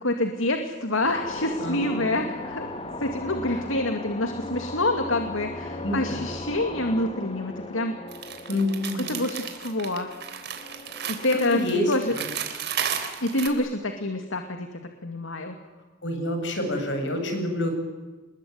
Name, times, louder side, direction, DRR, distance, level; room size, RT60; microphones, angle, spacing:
voice 1, 0.0-2.7 3.0-7.9 8.9-10.1 11.1-11.6 11.9-12.1 13.2-14.7 15.0-15.6, left 1 dB, 75° left, 6 dB, 2.4 m, -27 dB
sound 1, 1.0-12.5, left 2 dB, 25° left, 2.2 m, -37 dB
voice 2, 1.6-2.2 5.8-6.2 8.5-9.1 11.5-12.3 16.0-17.7, left 1 dB, 60° left, 5 dB, 7.5 m, -28 dB
sound 2, 8.1-13.5, right 8 dB, 55° right, 3.7 m, -33 dB
28.0 x 21.5 x 9.5 m, 1.2 s
head